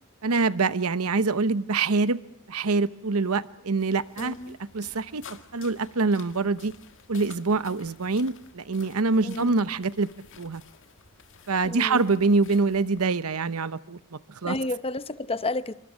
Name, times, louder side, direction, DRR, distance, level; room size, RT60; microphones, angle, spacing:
voice 1, 0.2-2.2 2.5-6.7 7.1-10.1 10.4-10.6 11.5-14.5, right 3 dB, 75° right, 0.9 m, -25 dB
sound 1, 3.8-13.1, left 6 dB, 60° left, 1.9 m, -51 dB
voice 2, 4.2-4.6 9.2-9.6 11.6-12.2 14.4-15.7, left 2 dB, 25° left, 0.9 m, -31 dB
27.5 x 25.0 x 6.4 m
head